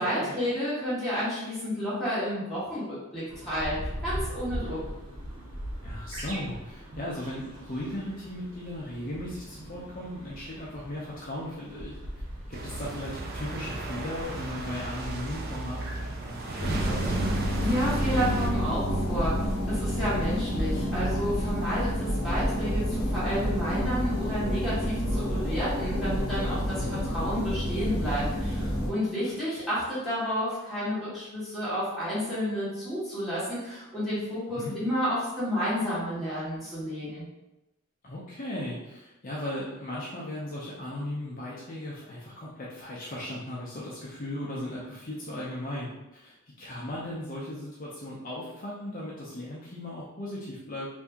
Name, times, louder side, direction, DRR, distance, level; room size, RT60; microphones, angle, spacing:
voice 1, 0.0-4.8 17.6-26.9 27.1-37.2, equal, ahead, -12 dB, 1.4 m, -31 dB
sound 1, 3.3-21.4, equal, 65° right, 0.8 m, -42 dB
voice 2, 5.8-12.0 12.5-17.3 26.7-27.0 34.5-34.7 38.0-50.9, left 1 dB, 40° left, -6 dB, 0.6 m, -37 dB
sound 2, 12.5-18.5, right 2 dB, 45° right, 0.4 m, -36 dB
sound 3, 16.6-28.9, equal, 80° left, 0.9 m, -29 dB
2.8 x 2.6 x 3.5 m, 0.95 s
head